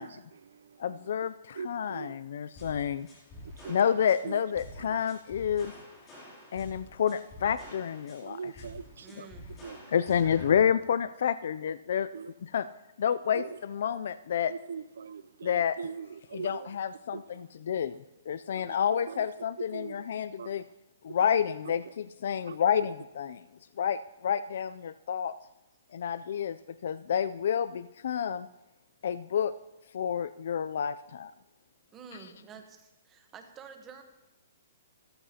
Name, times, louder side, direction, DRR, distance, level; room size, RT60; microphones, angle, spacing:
voice 1, 0.0-1.1 1.5-2.2 3.4-3.8 4.2-4.4 4.8-5.0 8.2-9.3 9.6-9.9 12.1-12.3 13.3-13.6 14.5-16.8 17.1-17.4 18.5-18.8 19.1-19.3 19.7-20.1 20.4-20.7 21.1-21.2 21.6-21.9 22.5-22.6, right 6 dB, 75° right, 0.5 m, -42 dB
voice 2, 0.8-3.1 3.7-5.7 6.5-8.4 9.9-12.1 12.5-12.7 13.0-14.5 15.4-15.8 16.3-18.0 18.3-20.6 21.0-23.4 23.8-25.3 25.9-26.6 26.8-28.5 29.0-29.5 29.9-31.3, left 8 dB, 60° left, 0.3 m, -29 dB
sound 1, 2.6-10.6, left 1 dB, 15° left, 3.1 m, -48 dB
voice 3, 9.0-9.5 31.9-34.0, right 6 dB, 15° right, 1.0 m, -49 dB
16.0 x 13.5 x 2.8 m
hypercardioid pair, 170°, 0 cm